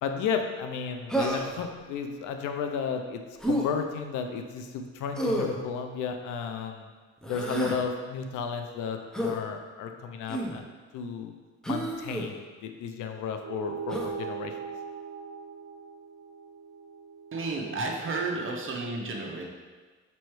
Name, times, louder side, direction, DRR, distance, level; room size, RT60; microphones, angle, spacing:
voice 1, 0.0-6.9 7.3-10.6 10.9-11.3 11.7-14.6, left 6 dB, 90° left, 5 dB, 0.5 m, -33 dB
Human voice, 1.1-1.6 3.4-3.7 5.2-5.6 7.2-7.8 9.1-9.4 10.3-10.6 11.6-12.3 13.9-14.1, right 1 dB, ahead, 0.6 m, -29 dB
sound 1, 13.4-18.2, right 6 dB, 80° right, 0.6 m, -40 dB
voice 2, 17.3-19.4, right 3 dB, 40° right, 0 dB, 0.8 m, -32 dB
5.5 x 3.1 x 3.1 m, 1.4 s
cardioid pair, 90°, 30 cm